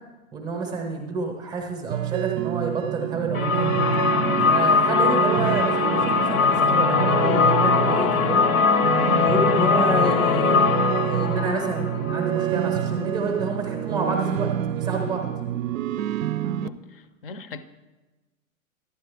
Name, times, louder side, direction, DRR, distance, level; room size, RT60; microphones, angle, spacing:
voice 1, 0.3-3.8 4.4-8.5 9.2-10.8 11.1-15.4, right 3 dB, 10° right, 2 dB, 0.6 m, -29 dB
sound 1, 1.9-16.7, right 11 dB, 70° right, 0.5 m, -27 dB
sound 2, 3.3-13.0, left 5 dB, 80° left, 0.9 m, -21 dB
voice 2, 16.5-17.6, left 4 dB, 40° left, 13 dB, 0.6 m, -40 dB
11.5 x 9.4 x 3.4 m, 1.2 s
hypercardioid pair, 165°, 42 cm